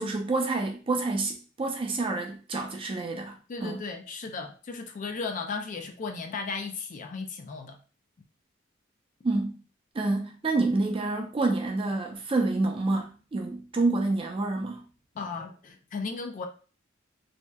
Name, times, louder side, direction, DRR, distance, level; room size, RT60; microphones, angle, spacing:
voice 1, 0.0-3.8 9.2-9.6 9.9-14.8, right 2 dB, 25° right, 0.4 m, -28 dB
voice 2, 3.5-7.8 15.2-16.5, left 4 dB, 40° left, 0.3 m, -35 dB
2.7 x 2.0 x 2.2 m
head